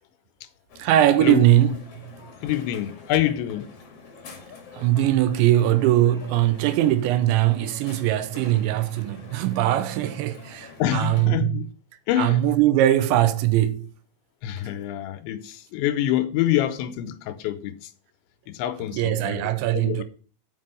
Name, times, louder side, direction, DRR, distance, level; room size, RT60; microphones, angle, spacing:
Crowd, 0.7-11.3, left 4 dB, 50° left, 1.9 m, -46 dB
voice 1, 0.8-2.0 4.7-11.6 12.2-13.9 18.9-20.0, right 13 dB, 90° right, 3.0 m, -21 dB
voice 2, 2.4-3.7 10.8-11.7 12.1-12.5 14.4-17.9 18.5-20.0, left 12 dB, 85° left, 3.0 m, -26 dB
7.5 x 6.1 x 6.7 m
omnidirectional pair, 5.2 m